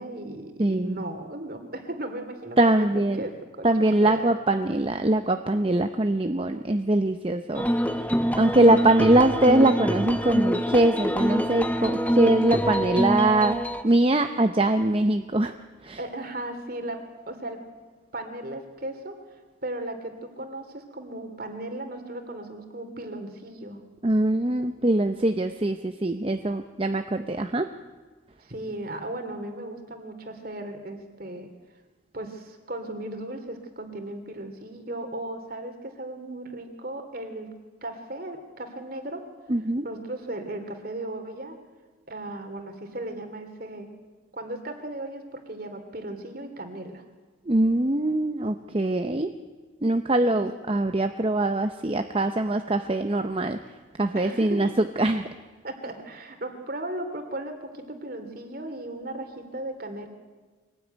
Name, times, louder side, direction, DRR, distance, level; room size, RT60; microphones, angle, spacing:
voice 1, 0.0-3.7 4.0-4.2 16.0-17.6 18.1-19.2 19.6-23.8 28.4-31.5 32.1-37.5 37.8-39.3 39.8-41.6 42.1-43.9 44.3-47.0 50.2-50.5 54.1-54.7 55.6-60.1, right 1 dB, 45° right, 6 dB, 2.7 m, -36 dB
voice 2, 0.6-1.0 2.6-3.2 3.6-7.7 8.4-15.5 15.8-16.0 24.0-27.7 39.5-39.8 47.5-49.4 49.8-53.6 54.0-55.2, right 1 dB, 30° right, 7 dB, 0.7 m, -22 dB
sound 1, 7.5-13.8, equal, 10° left, 1.0 m, -25 dB
23.5 x 18.0 x 9.2 m, 1.4 s
head